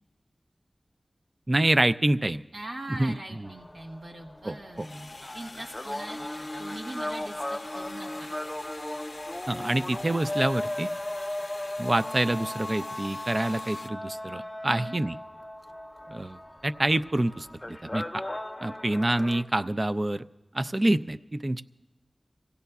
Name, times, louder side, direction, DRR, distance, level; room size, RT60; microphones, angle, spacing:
voice 1, 1.5-2.4 2.9-3.5 4.4-4.9 9.5-10.9 11.8-15.2 16.1-18.2 18.6-20.2 20.5-21.6, right 1 dB, 40° right, 12 dB, 0.4 m, -27 dB
voice 2, 2.5-5.1 5.3-8.3 14.6-15.0, right 1 dB, 85° right, -2 dB, 1.3 m, -41 dB
sound 1, 3.4-19.4, left 1 dB, 20° left, 0.5 m, -37 dB
sound 2, 4.7-13.9, left 2 dB, 65° left, 0.6 m, -45 dB
25.5 x 17.0 x 2.3 m, 1.1 s
wide cardioid pair, 65°, 0 cm